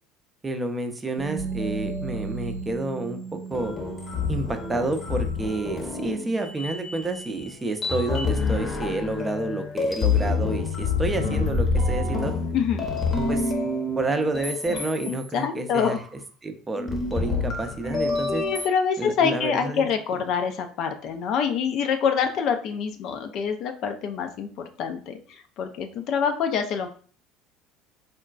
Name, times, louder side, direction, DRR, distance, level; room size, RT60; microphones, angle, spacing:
voice 1, 0.4-3.8 4.3-12.3 13.3-13.5 14.0-16.0 16.4-18.4 19.0-19.9, right 2 dB, 20° right, 6 dB, 0.5 m, -29 dB
Bass guitar, 1.2-7.4, right 7 dB, 75° right, 0.6 m, -38 dB
sound 1, 1.4-2.7 3.5-7.5 7.8-15.3 15.8-16.1 16.8-18.7, left 4 dB, 30° left, 0.7 m, -28 dB
voice 2, 12.5-12.9 14.7-14.8 15.3-16.0 18.3-24.5 24.8-26.9, left 7 dB, 50° left, 6 dB, 0.4 m, -26 dB
3.8 x 2.2 x 2.4 m, 0.43 s
figure-of-eight pair, 65°, 0 cm